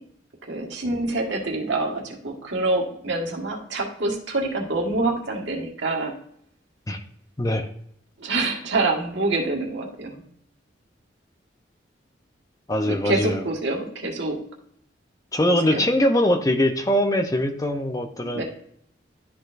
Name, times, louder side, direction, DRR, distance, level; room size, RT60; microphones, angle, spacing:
voice 1, 0.4-6.1 8.2-10.2 12.8-14.4 15.7-15.8 18.3-18.4, right 2 dB, 75° right, 0 dB, 1.6 m, -26 dB
voice 2, 7.4-7.7 12.7-13.4 15.3-18.4, left 1 dB, 20° left, 6 dB, 0.6 m, -22 dB
12.0 x 4.3 x 2.6 m, 0.67 s
head